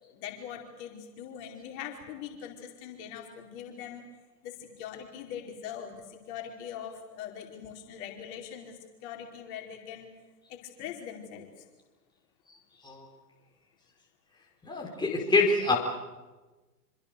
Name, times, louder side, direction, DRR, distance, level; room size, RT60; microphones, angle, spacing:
voice 1, 0.0-4.0 4.4-10.1 10.5-11.6, left 9 dB, 45° left, 1 dB, 4.9 m, -42 dB
voice 2, 14.6-15.8, left 3 dB, 10° left, -1 dB, 4.9 m, -25 dB
27.0 x 26.0 x 6.9 m, 1.2 s
hypercardioid pair, 115°, 49 cm